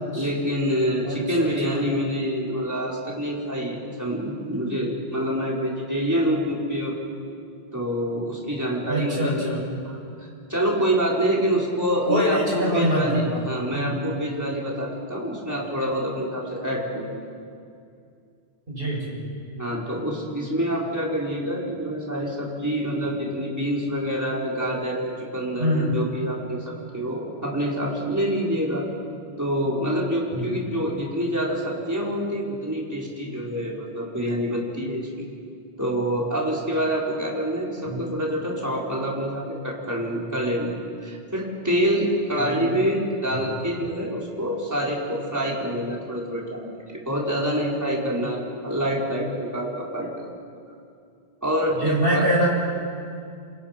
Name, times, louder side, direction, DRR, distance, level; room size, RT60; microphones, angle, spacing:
voice 1, 0.1-6.9 7.7-17.2 19.5-28.9 29.4-35.3 35.8-40.8 41.0-50.3 51.4-52.3, equal, 15° right, -4 dB, 4.7 m, -26 dB
voice 2, 1.0-1.4 1.6-1.8 8.9-9.6 12.1-13.4 13.7-14.0 18.7-19.2 25.6-26.0 30.3-30.6 37.9-38.0 42.3-42.6 51.7-52.6, equal, 60° right, -3 dB, 7.9 m, -24 dB
27.5 x 26.5 x 6.0 m, 2.4 s
omnidirectional pair, 1.1 m